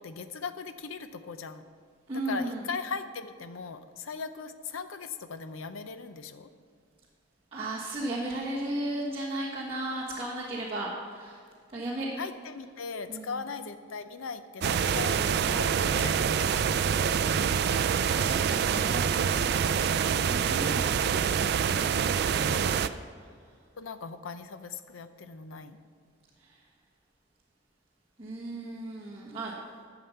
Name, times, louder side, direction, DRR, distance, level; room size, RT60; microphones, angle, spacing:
voice 1, 0.0-1.6 2.2-6.5 12.2-16.7 23.8-25.8, left 5 dB, 80° left, 10 dB, 0.6 m, -39 dB
voice 2, 2.1-2.6 7.5-11.4 11.7-12.1 13.1-13.4 17.0-19.1 20.1-22.0 28.2-29.5, right 1 dB, 25° right, -7 dB, 1.3 m, -35 dB
sound 1, 14.6-22.9, right 7 dB, 50° right, 0.3 m, -26 dB
11.0 x 6.9 x 5.7 m, 2.1 s
head